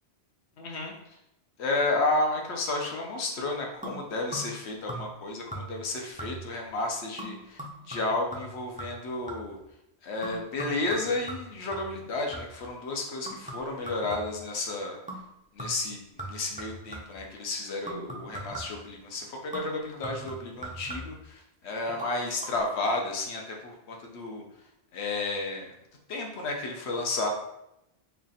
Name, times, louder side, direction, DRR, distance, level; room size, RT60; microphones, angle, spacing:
voice 1, 0.6-0.9 1.6-9.6 10.0-15.0 15.5-24.4 24.9-25.7 26.1-27.3, left 2 dB, 80° left, 1 dB, 1.0 m, -32 dB
sound 1, 3.8-4.6 4.9-5.2 5.5-5.9 6.2-6.6 7.2-9.6 10.2-12.7 13.3-14.5 15.1-15.3 15.6-17.2 17.9-18.9 19.5-21.3 21.9-22.1 22.4-22.5, right 2 dB, 10° right, 0.5 m, -41 dB
3.3 x 2.4 x 3.9 m, 0.84 s
omnidirectional pair, 1.1 m